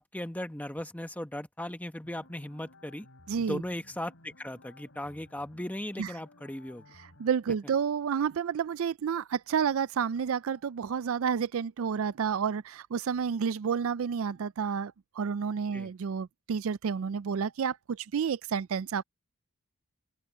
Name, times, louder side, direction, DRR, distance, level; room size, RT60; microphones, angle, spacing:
voice 1, 0.0-3.1 3.4-6.8 15.7-15.9, left 1 dB, 5° left, 1.1 m, -37 dB
sound 1, 2.0-7.3, left 2 dB, 65° left, 3.2 m, -57 dB
voice 2, 3.3-3.6 6.0-6.1 7.2-19.0, right 7 dB, 65° right, 0.4 m, -30 dB
open air
head